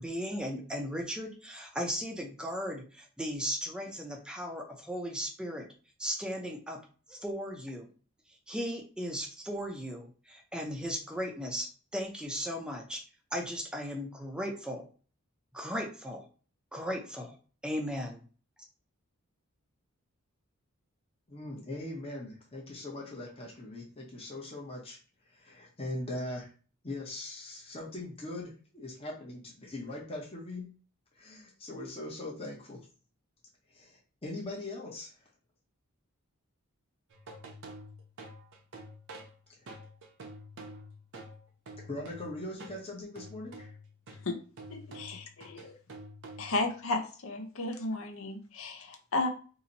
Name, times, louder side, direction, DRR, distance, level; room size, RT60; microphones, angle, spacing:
voice 1, 0.0-5.7 6.0-6.8 7.1-7.9 8.5-11.7 11.9-13.0 13.3-14.9 15.5-16.2 16.7-17.4 17.6-18.2, equal, 5° right, 1 dB, 0.6 m, -36 dB
voice 2, 21.3-25.0 25.2-26.5 26.8-30.7 31.2-32.8 33.7-35.3 39.6-39.7 41.8-43.7, left 1 dB, 25° left, -3 dB, 0.8 m, -41 dB
sound 1, 37.1-42.8 43.1-46.7, right 1 dB, 55° right, 0.7 m, -48 dB
voice 3, 44.7-45.8 46.4-49.3, left 2 dB, 65° left, 4 dB, 0.7 m, -34 dB
2.8 x 2.7 x 4.0 m, 0.38 s
head